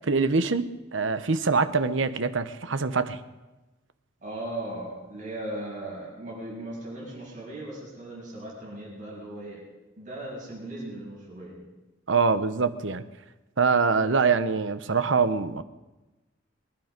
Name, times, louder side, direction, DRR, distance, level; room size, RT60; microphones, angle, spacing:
voice 1, 0.0-0.7 0.9-3.2 12.1-13.0 13.6-15.6, right 4 dB, 65° right, 0.9 m, -24 dB
voice 2, 4.2-9.7 10.0-11.6, right 1 dB, 40° right, 7.0 m, -37 dB
23.5 x 11.0 x 5.2 m
head